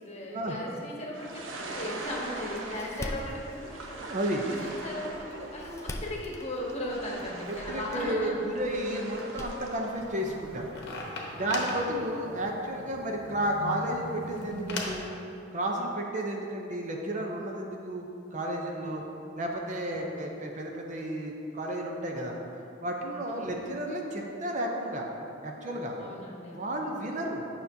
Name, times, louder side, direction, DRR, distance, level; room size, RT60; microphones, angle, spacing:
voice 1, 0.0-4.1 4.4-8.4 11.4-11.6 12.0-12.2 18.8-19.3 20.0-20.1 23.3-23.7 26.0-26.9, left 1 dB, 35° left, -3 dB, 1.1 m, -38 dB
sound 1, 1.1-10.7, right 2 dB, 90° right, 0.8 m, -42 dB
Door, 2.0-11.0, left 1 dB, 15° left, 0.4 m, -45 dB
voice 2, 3.7-4.4 7.7-10.7 11.3-15.1 15.5-19.0 19.4-22.4 22.8-25.1 25.4-26.0 26.5-27.5, right 1 dB, 40° right, 1 dB, 0.6 m, -32 dB
sound 2, 9.9-15.1, left 2 dB, 60° left, 0.9 m, -39 dB
9.0 x 5.8 x 2.7 m, 2.7 s
head